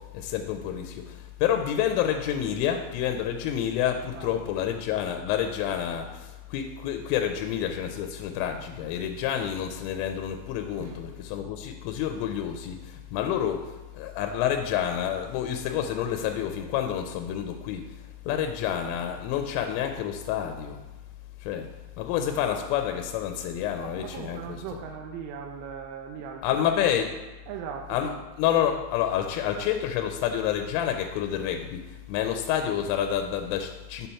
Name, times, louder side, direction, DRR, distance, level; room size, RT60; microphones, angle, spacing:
voice 1, 0.1-17.8 18.3-20.8 21.4-21.7 22.0-24.6 26.4-27.1 27.9-28.1 28.4-34.1, left 9 dB, 90° left, 5 dB, 3.1 m, -28 dB
voice 2, 23.8-26.4 27.0-27.1 27.5-28.2, right 7 dB, 90° right, 2 dB, 3.1 m, -39 dB
8.6 x 4.1 x 5.6 m, 1.1 s
omnidirectional pair, 5.6 m